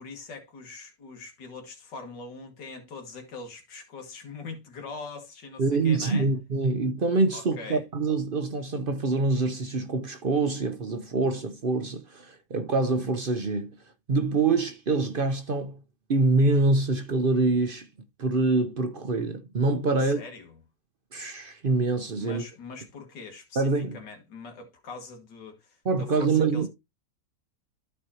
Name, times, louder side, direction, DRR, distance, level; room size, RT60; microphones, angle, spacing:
voice 1, 0.0-6.3 7.3-7.8 19.9-20.6 22.2-26.7, left 4 dB, 85° left, 2.3 m, -42 dB
voice 2, 5.6-13.7 14.1-15.8 16.1-17.9 18.2-20.2 21.1-22.4 23.6-24.0 25.8-26.7, right 3 dB, 50° right, 0.7 m, -25 dB
13.5 x 4.5 x 2.8 m
omnidirectional pair, 1.8 m